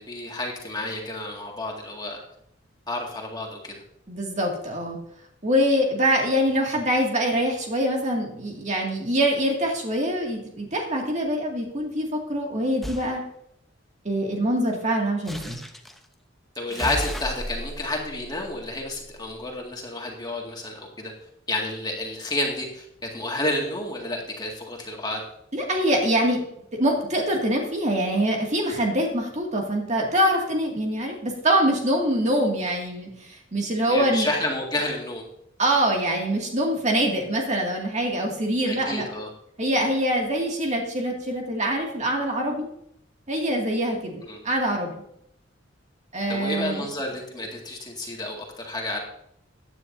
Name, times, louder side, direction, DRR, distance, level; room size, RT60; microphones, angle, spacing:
voice 1, 0.0-2.2 2.9-3.8 16.6-21.1 21.5-22.9 23.1-25.2 33.9-35.2 38.7-39.3 44.2-44.4 46.3-49.0, left 1 dB, 20° left, 0 dB, 2.1 m, -30 dB
voice 2, 4.1-5.0 5.4-13.2 14.0-15.6 25.5-26.4 26.7-34.3 35.6-39.1 39.6-42.7 43.3-45.0 46.1-46.9, equal, 40° right, 0 dB, 2.3 m, -24 dB
sound 1, 12.8-13.1 15.3-16.0 16.7-19.3, equal, ahead, 0.8 m, -35 dB
15.5 x 9.7 x 2.7 m, 0.73 s
head